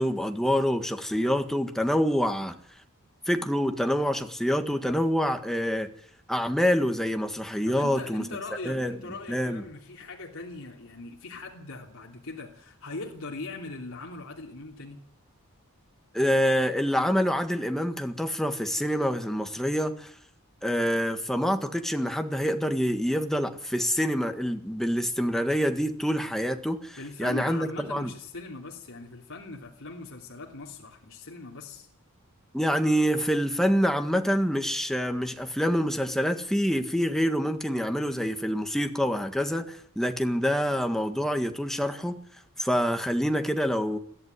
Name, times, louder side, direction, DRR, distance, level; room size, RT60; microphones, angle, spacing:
voice 1, 0.0-2.5 3.3-5.9 6.3-8.2 8.6-9.0 9.3-9.6 16.1-20.1 20.6-28.1 32.5-42.2 42.6-44.0, equal, ahead, 6 dB, 1.6 m, -26 dB
voice 2, 7.7-15.0 27.0-31.9, left 3 dB, 65° left, 0 dB, 3.1 m, -40 dB
22.5 x 14.5 x 9.7 m, 0.65 s
head